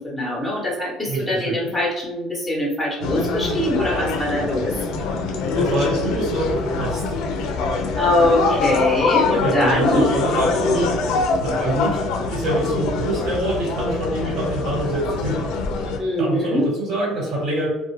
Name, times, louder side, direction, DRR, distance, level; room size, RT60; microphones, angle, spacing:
voice 1, 0.0-4.7 8.0-10.1 16.0-16.7, left 1 dB, ahead, -4 dB, 0.8 m, -22 dB
voice 2, 1.1-1.6 5.5-7.5 9.4-11.0 11.4-15.5 15.9-17.7, right 1 dB, 60° right, -6 dB, 1.3 m, -25 dB
sound 1, 3.0-16.0, left 4 dB, 70° left, 0.4 m, -24 dB
2.3 x 2.1 x 3.0 m, 1.0 s
cardioid pair, 145°, 0 cm